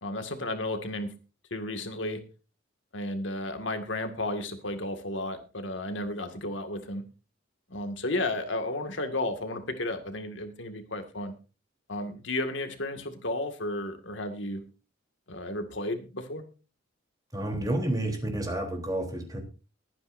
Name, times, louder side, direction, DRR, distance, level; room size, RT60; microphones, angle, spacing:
voice 1, 0.0-1.1 1.5-2.2 2.9-7.0 7.7-11.3 11.9-14.6 15.3-16.4, left 1 dB, 65° left, 6 dB, 2.0 m, -33 dB
voice 2, 17.3-19.4, right 1 dB, 20° right, 3 dB, 3.5 m, -30 dB
21.5 x 9.7 x 2.7 m, 0.33 s
head